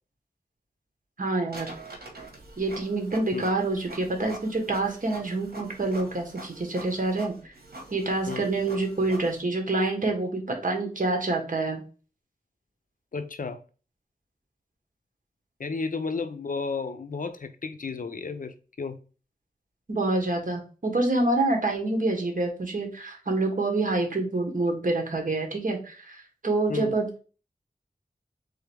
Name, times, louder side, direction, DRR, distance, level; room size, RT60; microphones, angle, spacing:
voice 1, 1.2-1.7 2.6-7.3 7.9-11.8 19.9-27.1, right 2 dB, 60° right, 1.3 m, -27 dB
Printer, 1.5-9.4, right 2 dB, 85° right, 1.1 m, -45 dB
voice 2, 13.1-13.6 15.6-19.0 26.7-26.9, left 4 dB, 60° left, 0.5 m, -33 dB
3.8 x 3.5 x 3.3 m
wide cardioid pair, 65°, 16 cm